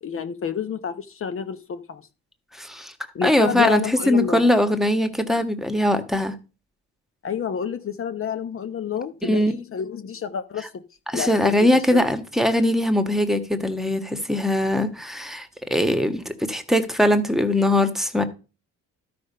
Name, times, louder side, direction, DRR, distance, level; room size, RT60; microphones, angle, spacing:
voice 1, 0.0-2.1 3.1-4.4 7.2-10.8 11.1-12.0, left 7 dB, 45° left, 0.9 m, -29 dB
voice 2, 2.6-2.9 3.2-6.3 9.2-9.6 11.1-18.2, left 1 dB, ahead, 1.5 m, -21 dB
12.0 x 5.1 x 5.5 m
cardioid pair, 90°, 30 cm